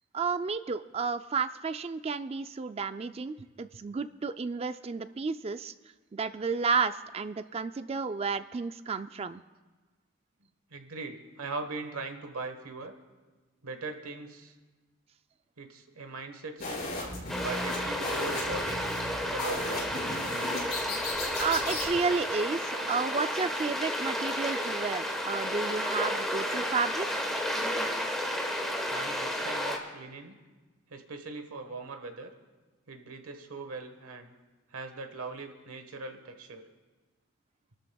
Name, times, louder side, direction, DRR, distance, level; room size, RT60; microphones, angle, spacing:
voice 1, 0.1-5.7 6.1-9.4 21.4-27.1, right 5 dB, 30° right, 12 dB, 0.3 m, -32 dB
voice 2, 10.7-12.9 13.6-14.5 15.6-16.8 17.4-18.9 19.2-19.9 20.9-21.1 28.9-30.4 30.9-32.3 32.9-34.3 34.7-36.6, right 3 dB, 90° right, 6 dB, 1.3 m, -40 dB
sound 1, 16.6-21.9, left 2 dB, 45° left, 5.6 m, -36 dB
sound 2, 17.3-29.8, equal, ahead, 1.2 m, -32 dB
30.0 x 12.5 x 2.3 m, 1.2 s
head